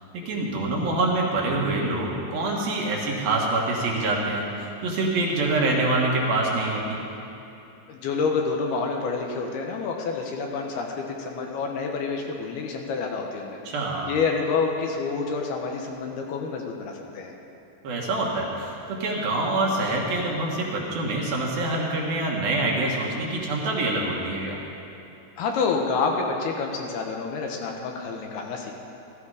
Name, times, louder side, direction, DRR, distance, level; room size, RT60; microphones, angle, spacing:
voice 1, 0.3-7.0 13.7-14.1 17.8-24.6, right 2 dB, 65° right, -2 dB, 3.0 m, -25 dB
voice 2, 7.9-13.6 14.1-17.3 25.4-28.7, left 4 dB, 70° left, 1 dB, 2.8 m, -28 dB
15.5 x 14.5 x 4.9 m, 2.9 s
omnidirectional pair, 5.0 m